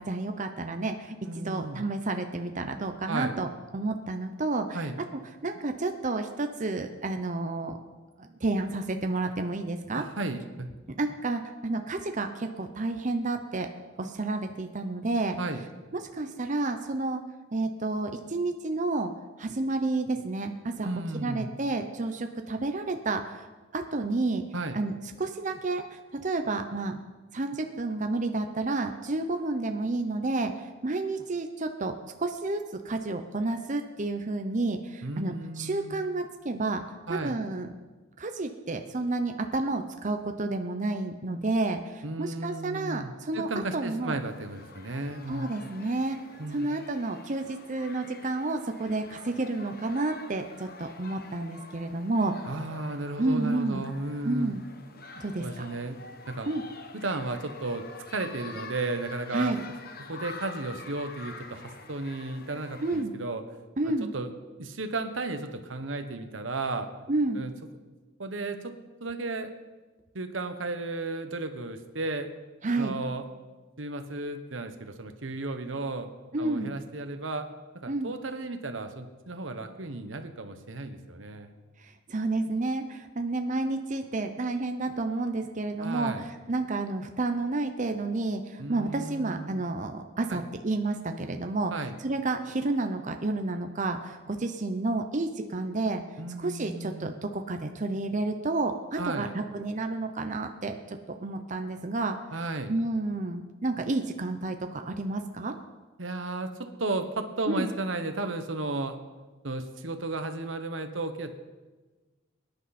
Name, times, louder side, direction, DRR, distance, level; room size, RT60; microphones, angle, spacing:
voice 1, 0.0-3.5 3.7-4.9 5.4-7.8 8.2-10.0 11.0-13.7 14.0-15.4 15.9-17.2 17.5-19.1 19.4-20.9 21.2-23.5 23.7-24.4 24.7-24.9 25.2-27.0 27.3-36.8 37.1-37.7 38.2-44.2 45.3-46.2 46.5-52.4 53.2-53.9 54.2-54.6 55.2-55.7 56.5-56.6 59.3-59.6 62.8-63.1 63.8-64.1 67.1-67.4 72.6-73.0 76.3-76.7 77.9-78.1 81.8-91.7 92.0-96.0 96.4-102.2 102.7-105.5 107.5-107.7, right 2 dB, 40° right, 6 dB, 0.8 m, -30 dB
voice 2, 1.3-1.8 3.1-3.4 4.7-5.0 9.9-10.7 15.4-15.6 20.8-21.5 24.5-24.8 35.0-36.0 37.1-37.4 42.0-45.5 46.4-46.7 52.5-54.6 55.4-56.0 56.3-56.5 56.9-59.5 60.1-63.4 64.1-64.3 64.6-66.9 67.3-67.5 68.2-68.7 69.0-69.5 70.1-72.3 72.7-73.2 73.8-76.1 76.4-77.5 77.7-81.5 85.8-86.3 88.6-89.6 90.3-90.4 91.7-92.0 96.2-97.1 99.0-99.3 102.3-102.7 106.0-109.0 109.4-111.4, right 2 dB, 80° right, 8 dB, 1.2 m, -34 dB
sound 1, 44.2-63.0, left 4 dB, 50° left, 1.1 m, -47 dB
23.0 x 10.5 x 4.3 m, 1.3 s
head